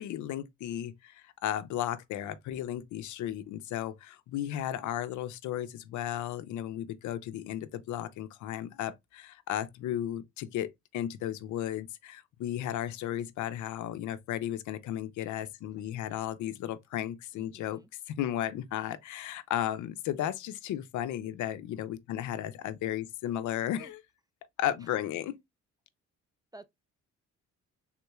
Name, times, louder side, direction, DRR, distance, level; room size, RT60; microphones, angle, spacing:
voice 1, 0.0-17.8 18.2-24.0 24.6-25.4, left 11 dB, 75° left, 0.5 m, -34 dB
voice 2, 17.3-17.9 23.8-23.9 26.5-26.7, right 2 dB, 15° right, 0.3 m, -51 dB
3.6 x 3.0 x 2.2 m
cardioid pair, 90°, 30 cm